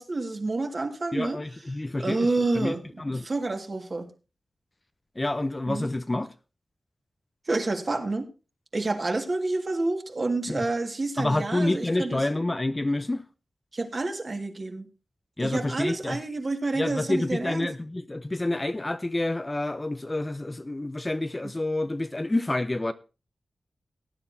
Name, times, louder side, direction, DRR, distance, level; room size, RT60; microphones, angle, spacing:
voice 1, 0.0-1.4 2.0-2.9 3.2-4.1 5.7-5.9 7.5-8.3 8.7-12.2 13.7-14.9 15.4-17.7, right 2 dB, 45° right, 1.9 m, -28 dB
voice 2, 1.1-2.3 2.5-3.3 5.2-6.3 10.5-10.7 11.2-13.2 15.4-16.2 16.7-22.9, left 2 dB, 25° left, 0.6 m, -28 dB
18.0 x 9.9 x 2.7 m
wide cardioid pair, 85°, 0 cm